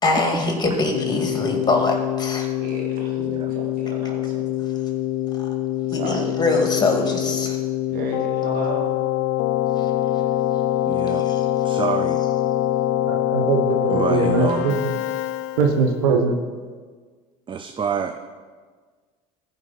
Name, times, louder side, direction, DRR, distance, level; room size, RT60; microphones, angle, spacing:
voice 1, 0.0-2.5 5.9-7.6 9.8-9.9 11.3-11.4, left 3 dB, 25° left, 2 dB, 2.1 m, -23 dB
Keyboard (musical), 0.9-16.0, left 13 dB, 70° left, 0.4 m, -24 dB
voice 2, 2.6-4.5 5.9-6.2 7.9-9.0 13.2-13.3, right 3 dB, 55° right, -1 dB, 2.7 m, -34 dB
voice 3, 3.2-3.5 7.9-8.2 10.8-11.3 11.6-12.2 13.9-14.7 17.5-18.2, right 6 dB, 30° right, 7 dB, 0.6 m, -27 dB
voice 4, 13.1-14.7 15.6-16.3, right 5 dB, 85° right, 3 dB, 1.1 m, -21 dB
15.0 x 5.2 x 4.1 m, 1.5 s
hypercardioid pair, 80°, 18 cm